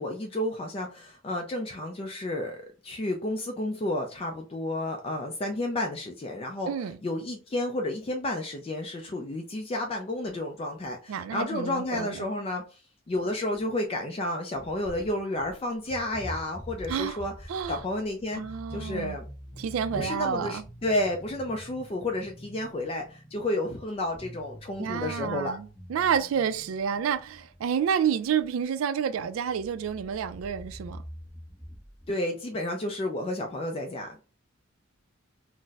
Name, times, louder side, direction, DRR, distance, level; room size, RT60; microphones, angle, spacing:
voice 1, 0.0-6.7 7.0-12.8 13.1-17.3 17.7-18.4 18.7-19.3 19.9-25.6 32.1-34.2, left 1 dB, 30° left, 0.3 m, -31 dB
voice 2, 6.7-7.0 11.1-12.2 16.9-17.8 18.4-19.2 19.6-20.6 24.8-31.0, right 7 dB, 85° right, 0.3 m, -29 dB
My Tummy's Intensive Moans & Hunger Rumbles, 14.6-15.5 15.8-28.0 29.2-29.3 29.5-32.1, equal, 5° right, 1.1 m, -45 dB
4.0 x 2.0 x 2.3 m
head